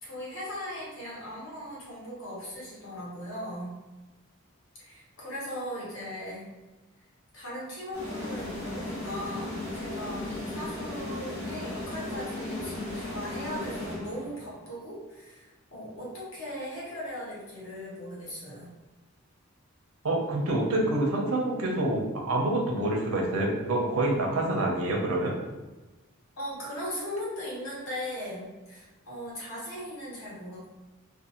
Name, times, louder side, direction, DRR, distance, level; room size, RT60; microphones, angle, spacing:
voice 1, 0.0-3.8 4.8-6.5 7.3-18.7 26.4-30.7, equal, 70° left, -6 dB, 1.0 m, -38 dB
sound 1, 7.9-14.5, left 2 dB, 30° left, 1.0 m, -36 dB
voice 2, 20.0-25.3, right 1 dB, 80° right, -1 dB, 0.5 m, -27 dB
2.5 x 2.2 x 2.8 m, 1.2 s
head